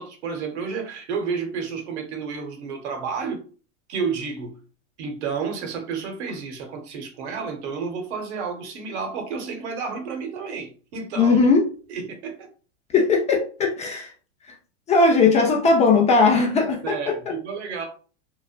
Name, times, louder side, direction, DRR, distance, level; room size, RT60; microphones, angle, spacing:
voice 1, 0.0-3.4 3.9-4.6 5.0-11.4 11.9-12.5 16.8-17.9, right 5 dB, 70° right, 1.0 m, -31 dB
voice 2, 11.2-11.7 12.9-14.1 14.9-17.1, left 4 dB, 20° left, 0.4 m, -18 dB
3.0 x 2.1 x 2.4 m
hypercardioid pair, 115°, 36 cm